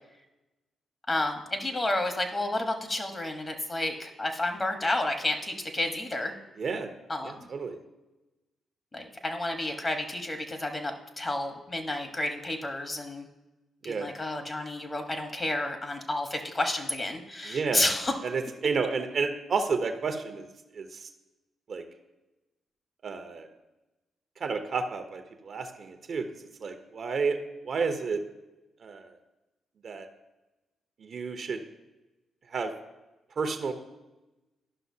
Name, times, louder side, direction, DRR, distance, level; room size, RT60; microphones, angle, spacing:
voice 1, 1.1-6.3 7.1-7.5 8.9-13.3 13.8-18.1, left 1 dB, 30° left, 5 dB, 1.3 m, -31 dB
voice 2, 6.6-6.9 7.2-7.8 13.8-14.1 17.4-17.9 18.2-20.5 20.7-21.1 21.7-21.8 23.0-23.5 24.4-26.2 26.6-27.4 27.6-28.2 28.8-29.1 29.8-30.1 31.0-31.6 32.5-32.7 33.4-33.7, right 5 dB, 60° right, 6 dB, 0.9 m, -31 dB
12.5 x 5.7 x 2.8 m, 1.0 s
supercardioid pair, 55°, 0 cm